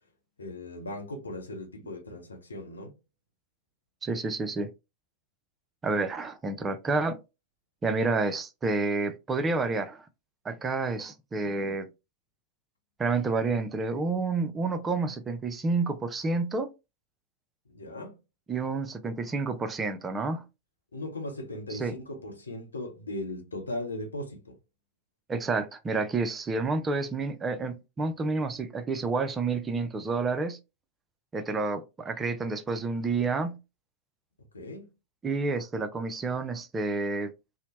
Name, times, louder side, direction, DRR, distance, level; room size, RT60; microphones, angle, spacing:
voice 1, 0.4-3.0 17.7-18.2 20.9-24.6 34.5-34.9, left 1 dB, 75° left, 0.7 m, -38 dB
voice 2, 4.0-4.7 5.8-7.2 7.8-10.1 10.4-11.9 13.0-16.7 18.5-20.4 21.7-21.9 25.3-30.6 31.3-33.6 35.2-37.3, right 3 dB, 20° right, 0.4 m, -29 dB
2.8 x 2.0 x 3.0 m
figure-of-eight pair, 90°, 0 cm